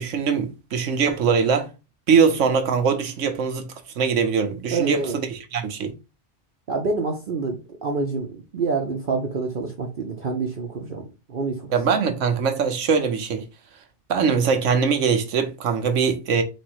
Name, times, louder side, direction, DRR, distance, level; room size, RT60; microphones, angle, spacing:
voice 1, 0.0-1.7 2.1-5.9 11.7-13.5 14.1-16.4, right 6 dB, 85° right, 1.2 m, -22 dB
voice 2, 4.7-5.2 6.7-11.0 11.3-11.5, right 4 dB, 50° right, 0.8 m, -27 dB
4.3 x 2.5 x 4.5 m
omnidirectional pair, 1.2 m